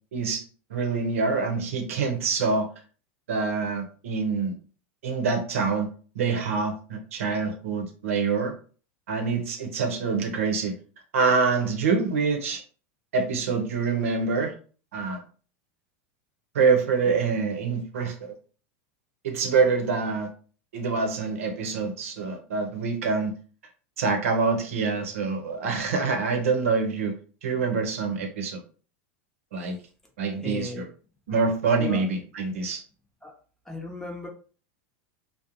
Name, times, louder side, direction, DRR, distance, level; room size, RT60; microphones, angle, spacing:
voice 1, 0.1-0.4 0.7-2.7 3.3-4.5 5.0-5.9 6.1-8.5 9.1-10.7 11.1-12.6 13.1-14.5 14.9-15.2 16.5-18.3 19.2-20.3 20.7-23.3 24.0-27.1 27.4-28.6 29.5-29.8 30.2-30.9 31.3-32.8, right 4 dB, 90° right, 4 dB, 0.7 m, -25 dB
voice 2, 30.3-30.9 31.8-32.0 33.2-33.3 33.7-34.3, left 2 dB, 5° left, -1 dB, 0.7 m, -35 dB
2.5 x 2.1 x 2.9 m, 0.40 s
supercardioid pair, 135°, 7 cm